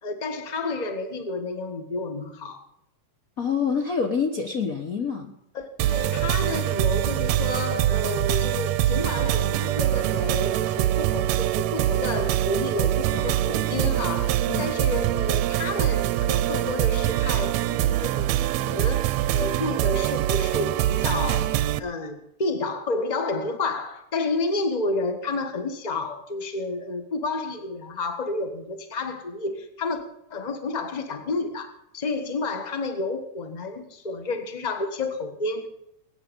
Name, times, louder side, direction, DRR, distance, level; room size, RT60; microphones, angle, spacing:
voice 1, 0.0-2.6 5.5-21.5 21.8-30.0 30.3-35.7, left 3 dB, 35° left, 0.7 m, -30 dB
voice 2, 3.4-5.3 14.5-14.7, left 6 dB, 80° left, 0.7 m, -26 dB
sound 1, 5.8-21.8, right 13 dB, 75° right, 1.7 m, -24 dB
21.5 x 9.6 x 5.2 m
omnidirectional pair, 3.5 m